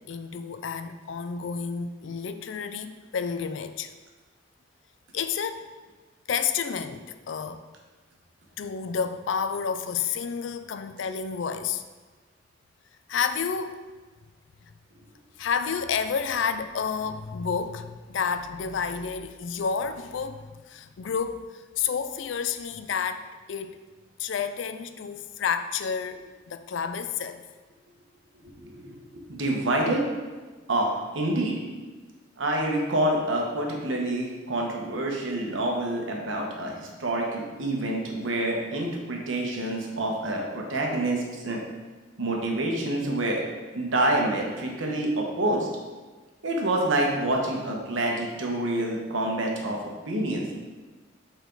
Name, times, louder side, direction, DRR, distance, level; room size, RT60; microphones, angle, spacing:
voice 1, 0.0-3.9 5.1-5.7 6.3-7.6 8.6-11.8 13.1-13.8 15.4-23.8 24.2-27.4, left 6 dB, 75° left, 10 dB, 0.4 m, -30 dB
voice 2, 28.6-29.0 29.3-30.1 30.7-31.6 32.4-41.6 42.2-43.4 43.7-45.7 46.4-49.8 50.1-50.4, right 1 dB, 85° right, 0 dB, 1.2 m, -27 dB
6.8 x 4.5 x 3.9 m, 1.3 s
head